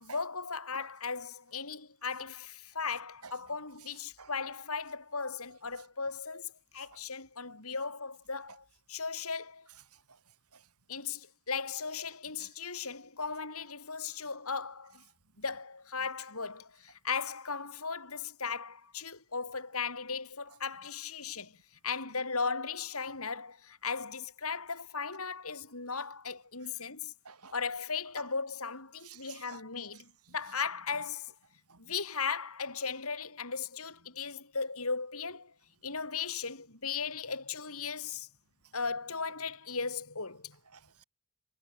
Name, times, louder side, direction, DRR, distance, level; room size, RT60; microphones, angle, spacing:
voice 1, 0.0-9.7 10.9-15.0 15.4-21.6 21.8-27.1 27.5-31.3 31.8-35.5 35.8-38.3 38.7-40.6, left 5 dB, 70° left, 6.0 m, -37 dB
voice 2, 9.9-10.7 12.4-12.5 14.0-14.1 16.0-16.1 21.2-21.3 25.9-26.0 26.6-26.7 27.2-27.6 28.2-28.3 29.0-29.6 29.9-30.4 30.9-31.0 31.7-31.9 38.6-38.7 40.7-41.0, right 5 dB, 85° right, 7.2 m, -53 dB
head